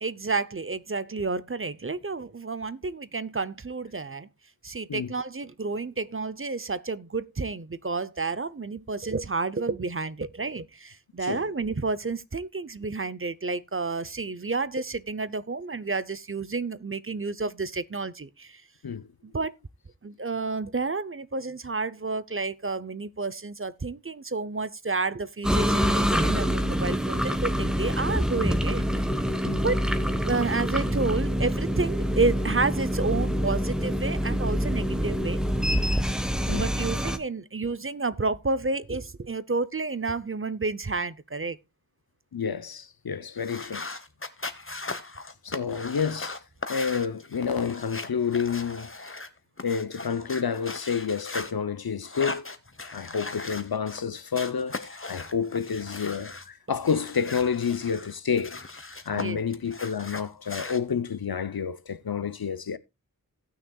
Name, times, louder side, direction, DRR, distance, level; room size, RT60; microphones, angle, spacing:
voice 1, 0.0-4.3 4.6-18.6 19.2-19.5 20.0-28.9 29.6-35.4 36.5-41.6 59.1-59.4, right 3 dB, 35° right, 0.6 m, -30 dB
sound 1, 25.4-37.2, equal, ahead, 1.2 m, -26 dB
voice 2, 42.3-43.9 45.4-46.4 46.7-48.9 49.6-52.5 52.8-58.6 59.1-62.8, left 6 dB, 90° left, 0.7 m, -29 dB
sound 2, 43.4-51.5 52.0-54.0 54.3-56.5 56.8-59.2 59.5-60.8, left 3 dB, 35° left, 1.0 m, -38 dB
18.0 x 6.3 x 2.3 m
wide cardioid pair, 45°, 36 cm